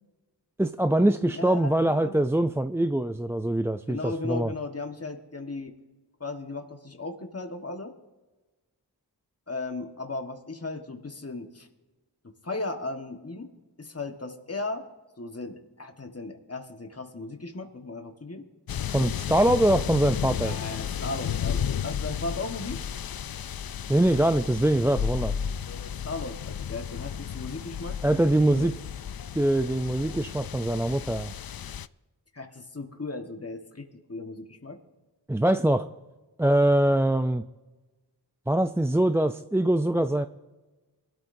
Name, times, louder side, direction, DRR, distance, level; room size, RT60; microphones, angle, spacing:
voice 1, 0.6-4.5 18.9-20.5 23.9-25.3 28.0-28.7 29.3-31.3 35.3-35.9 36.4-37.4 38.5-40.3, right 1 dB, 5° right, 9 dB, 0.4 m, -23 dB
voice 2, 1.2-2.1 3.9-5.8 6.2-7.9 9.5-11.7 12.2-13.5 13.8-14.9 15.2-18.4 18.9-19.1 20.4-22.8 25.7-28.0 28.5-28.7 32.3-34.8, left 3 dB, 35° left, 5 dB, 1.4 m, -36 dB
sound 1, 18.7-31.9, left 8 dB, 55° left, 0.5 m, -33 dB
22.5 x 12.5 x 2.6 m, 1.2 s
wide cardioid pair, 40°, 42 cm